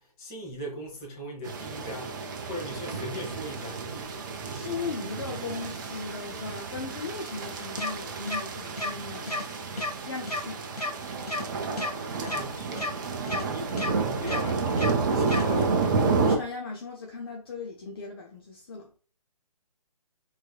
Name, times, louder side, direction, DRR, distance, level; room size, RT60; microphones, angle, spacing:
voice 1, 0.0-2.2 2.4-3.9 12.2-12.9 13.5-15.9, equal, 20° left, 1.3 m, -39 dB
sound 1, 1.5-16.4, right 4 dB, 30° right, 0.7 m, -30 dB
voice 2, 4.5-9.4 10.1-10.7 16.1-18.9, left 4 dB, 40° left, 0.7 m, -37 dB
sound 2, 7.8-7.9 8.3-8.4 8.8-8.9 9.3-9.4 9.8-9.9 10.3-10.4 10.8-10.9 11.3-11.4 11.8-11.9 12.3-12.4 12.8-12.9 13.3-13.4 13.8-13.9 14.3-14.4 14.8-14.9 15.3-15.4, left 2 dB, 75° left, 1.2 m, -30 dB
4.5 x 4.0 x 2.3 m
figure-of-eight pair, 135°, 20 cm